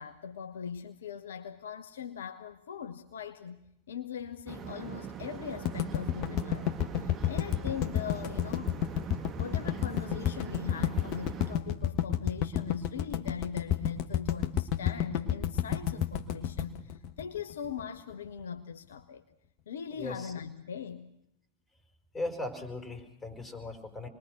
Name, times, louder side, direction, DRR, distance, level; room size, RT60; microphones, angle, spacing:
voice 1, 0.0-3.6 3.9-6.7 7.0-8.7 9.4-19.2 19.7-21.1, left 7 dB, 65° left, 8 dB, 1.1 m, -40 dB
sound 1, 4.5-11.5, right 7 dB, 30° right, 1.9 m, -42 dB
sound 2, 5.7-17.8, left 10 dB, 40° left, 1.4 m, -30 dB
voice 2, 20.0-20.3 22.1-24.1, left 2 dB, 10° left, 5 dB, 4.8 m, -38 dB
28.0 x 21.0 x 6.3 m, 0.79 s
figure-of-eight pair, 90°, 0 cm